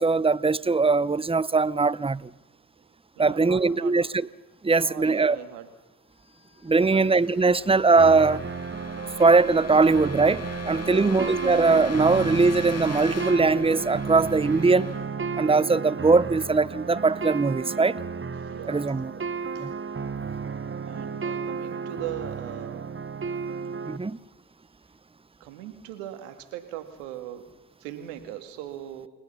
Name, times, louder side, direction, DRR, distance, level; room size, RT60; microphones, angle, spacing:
voice 1, 0.0-2.3 3.2-4.3 4.6-5.4 6.6-8.4 9.2-14.9 15.4-18.0 18.7-19.1 19.6-19.7 23.9-24.2, right 4 dB, 15° right, 0.8 m, -21 dB
voice 2, 3.2-4.1 4.8-5.7 6.8-7.1 10.8-11.2 18.4-18.9 19.5-19.7 20.9-22.9 25.4-27.5 27.8-29.1, right 12 dB, 85° right, 2.3 m, -39 dB
sound 1, 6.4-16.2, left 5 dB, 35° left, 2.3 m, -41 dB
sound 2, 8.0-24.0, right 5 dB, 30° right, 1.4 m, -33 dB
30.0 x 20.0 x 5.7 m
hypercardioid pair, 50°, 42 cm